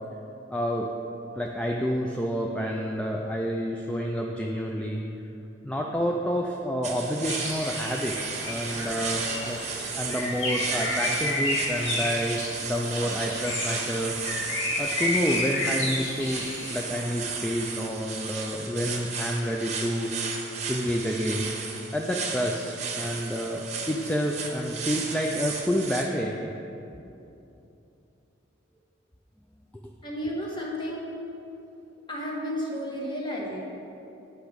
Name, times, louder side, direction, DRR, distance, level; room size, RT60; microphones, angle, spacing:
voice 1, 0.5-0.9 1.4-5.0 5.6-9.6 10.0-14.2 14.8-20.1 20.7-21.5 21.9-26.5 29.7-29.9, equal, 5° left, 0 dB, 0.4 m, -29 dB
sound 1, 6.8-26.0, right 5 dB, 35° right, 0.8 m, -34 dB
Bird, 7.3-16.8, left 1 dB, 75° left, 2.0 m, -31 dB
voice 2, 30.0-31.0 32.1-33.6, equal, 25° left, -3 dB, 1.3 m, -32 dB
8.3 x 5.8 x 5.1 m, 2.8 s
head